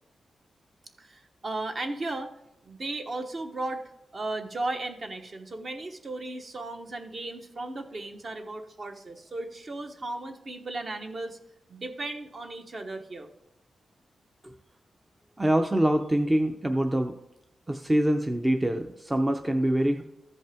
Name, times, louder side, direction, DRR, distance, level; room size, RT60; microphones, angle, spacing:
voice 1, 1.0-2.3 2.6-3.8 4.1-11.4 11.7-13.3, right 2 dB, 45° right, 5 dB, 1.1 m, -35 dB
voice 2, 15.4-17.1 17.7-20.0, right 1 dB, 15° right, 4 dB, 0.5 m, -25 dB
14.0 x 5.3 x 3.5 m, 0.85 s
wide cardioid pair, 105°, 0 cm